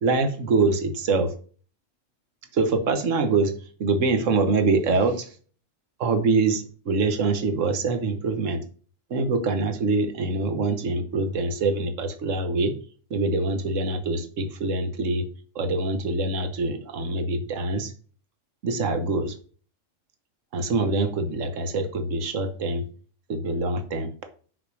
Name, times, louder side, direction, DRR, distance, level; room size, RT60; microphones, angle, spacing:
voice 1, 0.0-1.3 2.5-3.5 3.8-5.3 6.0-8.6 9.1-12.7 13.1-15.2 15.5-17.9 18.6-19.3 20.5-22.8 23.3-24.1, right 3 dB, 75° right, 8 dB, 1.5 m, -24 dB
6.2 x 6.0 x 6.3 m, 0.41 s
omnidirectional pair, 1.3 m